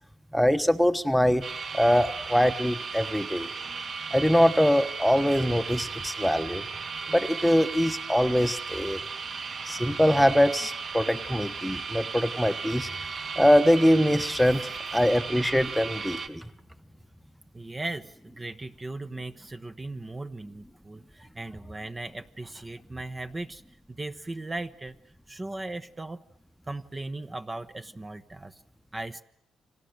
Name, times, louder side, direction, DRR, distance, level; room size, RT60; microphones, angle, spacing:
voice 1, 0.3-1.4 1.7-3.5 4.1-6.6 7.1-9.0 9.6-12.9 13.3-16.5, equal, ahead, 9 dB, 1.2 m, -23 dB
sound 1, 1.4-16.3, right 4 dB, 50° right, 2.3 m, -36 dB
voice 2, 17.5-23.6 23.9-24.9 25.3-26.2 26.7-28.6 28.9-29.2, right 2 dB, 20° right, 8 dB, 1.1 m, -37 dB
30.0 x 25.5 x 6.7 m, 0.76 s
cardioid pair, 90°, 0 cm